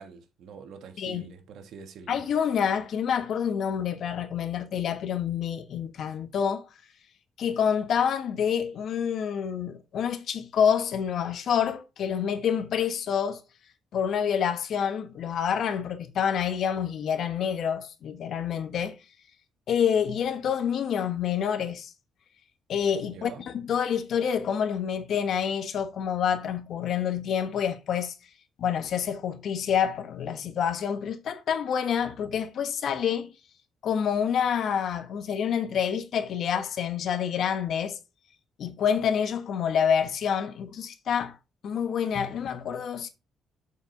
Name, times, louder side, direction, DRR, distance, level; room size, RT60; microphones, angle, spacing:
voice 1, 0.0-2.2 23.0-23.5, right 6 dB, 75° right, 1.5 m, -45 dB
voice 2, 2.1-6.7 7.4-13.4 13.9-19.0 19.7-21.9 22.7-28.1 28.6-33.3 33.8-38.0 38.6-41.4 41.6-43.1, left 8 dB, 65° left, 1.2 m, -27 dB
7.3 x 5.2 x 3.8 m
cardioid pair, 90°, 0 cm